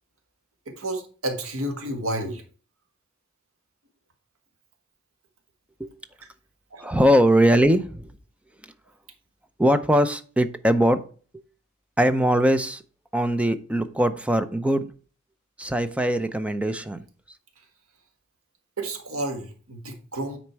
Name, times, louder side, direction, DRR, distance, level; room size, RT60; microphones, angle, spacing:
voice 1, 0.7-2.4 6.7-6.8 18.8-20.4, right 1 dB, 75° right, 4 dB, 1.7 m, -31 dB
voice 2, 6.8-8.1 9.6-11.0 12.0-12.8 13.1-14.9 15.6-17.0, equal, 5° right, 10 dB, 0.5 m, -21 dB
9.6 x 4.2 x 4.6 m, 0.39 s
head